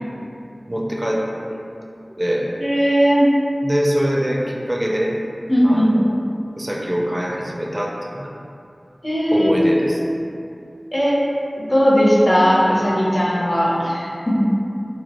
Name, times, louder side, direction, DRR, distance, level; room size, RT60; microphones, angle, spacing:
voice 1, 0.7-1.2 1.5-1.7 2.2-2.5 3.6-5.1 5.6-6.1 6.6-8.3 9.3-10.0, equal, 25° right, -2 dB, 0.4 m, -23 dB
voice 2, 2.6-3.3 5.5-6.0 9.0-9.5 10.1-10.2 10.9-11.2 11.6-14.5, equal, 30° left, -6 dB, 0.7 m, -17 dB
2.9 x 2.2 x 2.9 m, 2.6 s
wide cardioid pair, 60°, 0 cm